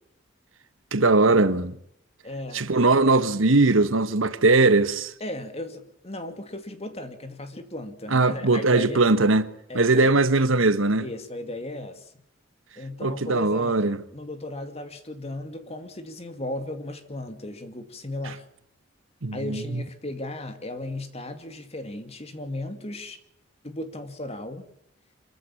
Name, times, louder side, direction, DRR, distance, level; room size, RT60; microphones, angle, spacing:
voice 1, 0.9-1.7 2.5-5.1 8.1-11.0 13.0-14.0 19.2-19.8, right 3 dB, 75° right, 1.4 m, -20 dB
voice 2, 2.2-2.8 5.2-9.0 9.7-10.2 11.0-12.1 12.8-18.4 19.3-23.2 23.6-24.7, left 1 dB, 30° left, 2.5 m, -36 dB
25.5 x 15.0 x 8.6 m
head